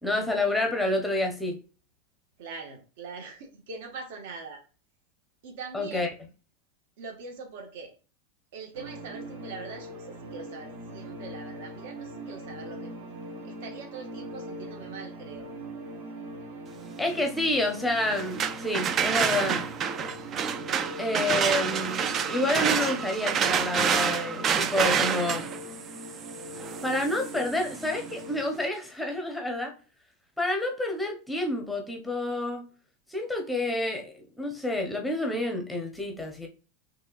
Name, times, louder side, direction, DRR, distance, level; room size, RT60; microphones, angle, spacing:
voice 1, 0.0-1.6 5.7-6.1 17.0-19.7 21.0-25.5 26.8-29.7 30.4-32.6 33.1-36.5, left 1 dB, 5° left, 0.8 m, -29 dB
voice 2, 2.4-4.6 5.4-6.1 7.0-7.9 8.5-12.9 13.4-15.5, right 4 dB, 60° right, 1.4 m, -42 dB
sound 1, 8.7-28.4, right 1 dB, 45° right, 1.0 m, -41 dB
sound 2, 18.1-28.0, right 7 dB, 20° right, 0.3 m, -28 dB
5.4 x 3.3 x 2.4 m
supercardioid pair, 170°, 0 cm